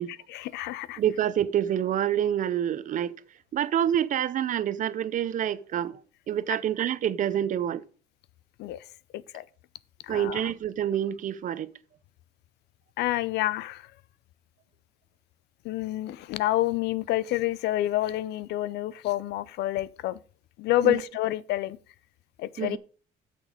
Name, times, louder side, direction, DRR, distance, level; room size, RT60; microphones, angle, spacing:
voice 1, 0.3-1.0 8.6-8.9 9.1-9.4 10.0-10.4 13.0-13.9 15.6-20.2 20.6-21.8 22.4-22.8, left 14 dB, 80° left, 0.6 m, -28 dB
voice 2, 1.0-3.1 3.5-6.0 6.3-7.8 10.1-11.7 20.8-21.0 22.6-22.8, right 10 dB, 50° right, 0.7 m, -27 dB
8.9 x 6.8 x 5.1 m
cardioid pair, 110°, 17 cm